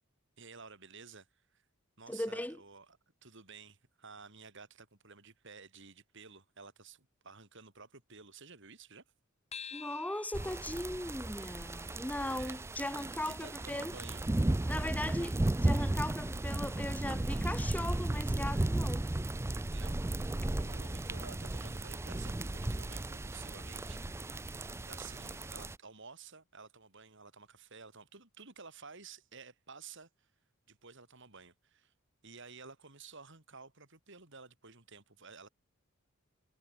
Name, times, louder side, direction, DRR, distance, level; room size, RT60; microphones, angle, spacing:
voice 1, 0.4-1.6 2.0-9.0 12.3-12.6 13.3-14.3 19.7-24.0 24.9-30.3 30.7-31.9 32.2-35.5, right 5 dB, 60° right, 4.4 m, -53 dB
voice 2, 2.1-2.6 9.7-14.0 14.7-19.1, left 1 dB, 5° left, 1.4 m, -38 dB
sound 1, 9.5-14.3, left 6 dB, 30° left, 5.2 m, -52 dB
sound 2, 10.3-25.8, right 1 dB, 10° right, 0.4 m, -35 dB
head